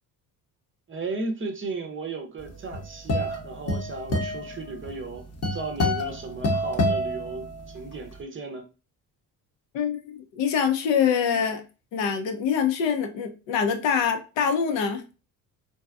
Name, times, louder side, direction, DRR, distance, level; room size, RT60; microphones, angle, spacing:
voice 1, 0.9-8.6, right 3 dB, 25° right, 0.6 m, -35 dB
sound 1, 2.5-7.9, left 1 dB, 35° left, 0.8 m, -28 dB
voice 2, 9.7-11.6 11.9-15.0, left 7 dB, 70° left, 0.7 m, -25 dB
2.7 x 2.2 x 2.3 m
hypercardioid pair, 60°, 46 cm